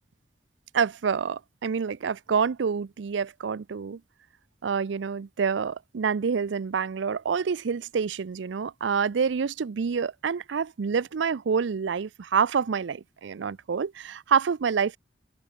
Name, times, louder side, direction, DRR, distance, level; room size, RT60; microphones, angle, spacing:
voice 1, 0.7-4.0 4.6-15.0, right 6 dB, 90° right, 0.5 m, -27 dB
open air
head